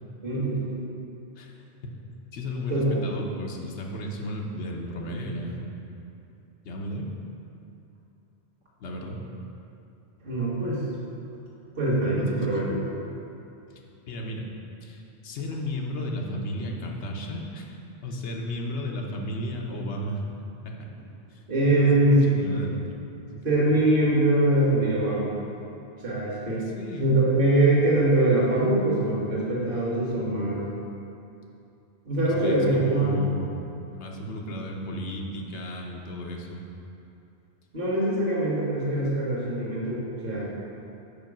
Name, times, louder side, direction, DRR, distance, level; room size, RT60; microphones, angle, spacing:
voice 1, 0.2-0.6 2.7-3.0 10.2-10.8 11.7-12.8 21.5-22.2 23.4-25.3 26.0-26.7 27.0-30.6 32.0-33.2 37.7-40.5, right 1 dB, 55° right, -6 dB, 1.6 m, -23 dB
voice 2, 2.3-5.6 6.6-7.1 8.8-9.3 12.2-12.6 14.1-14.5 14.8-20.9 21.3-21.4 21.7-22.9 23.2-23.4 26.6-27.1 32.2-33.5 33.9-36.6, left 1 dB, 85° left, 0 dB, 1.0 m, -34 dB
5.1 x 4.7 x 6.0 m, 2.7 s
omnidirectional pair, 1.1 m